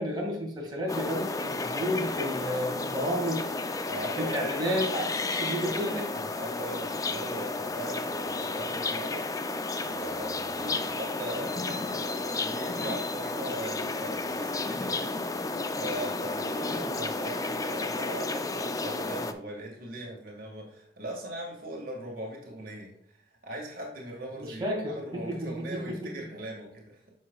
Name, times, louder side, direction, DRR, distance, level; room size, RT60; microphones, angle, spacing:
voice 1, 0.0-3.5 4.2-6.2 10.6-10.8 16.7-16.8 24.4-26.1, equal, 25° right, -3 dB, 2.1 m, -32 dB
sound 1, 0.9-19.3, left 3 dB, 20° left, 0.4 m, -32 dB
voice 2, 3.9-4.5 6.3-22.9 23.4-27.0, right 1 dB, 55° right, -1 dB, 1.9 m, -40 dB
9.2 x 6.6 x 2.3 m, 0.71 s
head